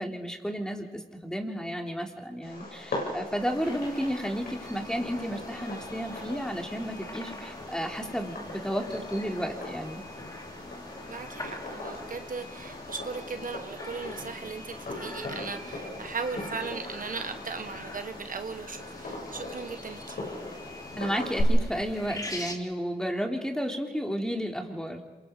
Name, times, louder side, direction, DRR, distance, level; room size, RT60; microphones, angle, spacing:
voice 1, 0.0-10.0 21.0-25.0, equal, 5° left, 2 dB, 3.5 m, -32 dB
Fireworks, 2.4-21.4, left 2 dB, 80° left, 7.6 m, -40 dB
sound 1, 3.4-22.6, left 1 dB, 25° left, 3.0 m, -45 dB
voice 2, 11.0-20.2, right 5 dB, 60° right, 8 dB, 1.3 m, -38 dB
27.0 x 23.0 x 5.3 m, 1.4 s
cardioid pair, 60°, 16 cm